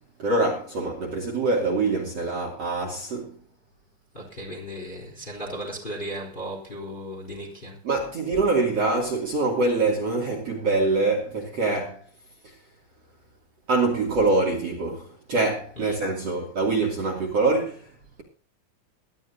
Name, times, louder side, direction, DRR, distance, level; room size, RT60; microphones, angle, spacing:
voice 1, 0.2-3.4 7.8-12.0 12.4-12.5 13.7-17.9, right 3 dB, 40° right, 3.2 m, -24 dB
voice 2, 4.1-7.8 15.7-16.0, equal, 10° left, 3.3 m, -36 dB
21.5 x 12.5 x 2.8 m
omnidirectional pair, 5.4 m